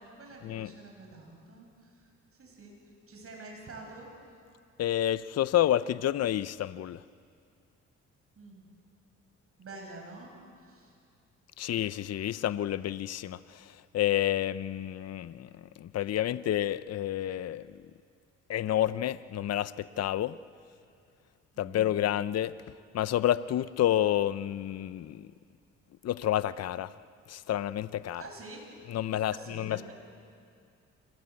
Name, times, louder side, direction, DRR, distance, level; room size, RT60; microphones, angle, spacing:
voice 1, 0.0-2.7 3.1-4.1 8.4-8.7 9.6-10.3 10.6-10.9 21.5-21.9 28.2-28.7 29.3-29.9, right 2 dB, 45° right, 1 dB, 7.7 m, -47 dB
voice 2, 4.8-7.0 11.6-13.4 13.9-15.5 15.8-17.6 18.5-20.3 21.6-22.5 22.9-25.3 26.0-26.9 27.3-28.2 28.9-29.8, left 12 dB, 55° left, 16 dB, 0.7 m, -29 dB
26.5 x 20.0 x 8.5 m, 2.3 s
cardioid pair, 75°, 31 cm